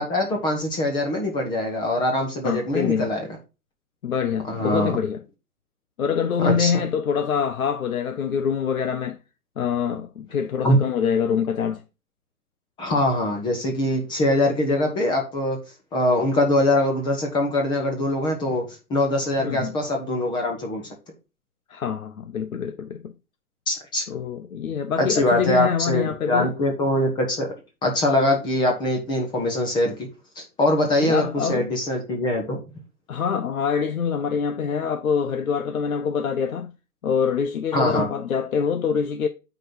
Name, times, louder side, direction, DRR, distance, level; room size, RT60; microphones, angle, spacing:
voice 1, 0.0-3.3 4.5-4.9 6.4-6.7 10.6-10.8 12.8-15.6 15.9-20.8 23.7-24.0 25.0-27.6 27.8-30.1 30.4-32.6 37.7-38.1, left 1 dB, 10° left, 1.0 m, -23 dB
voice 2, 2.4-3.1 4.0-5.2 6.0-9.2 9.6-11.8 19.4-19.7 21.7-23.1 24.1-26.5 31.0-31.7 33.1-36.7 37.0-39.3, left 7 dB, 60° left, 0.9 m, -25 dB
9.0 x 4.1 x 4.3 m
figure-of-eight pair, 135°, 46 cm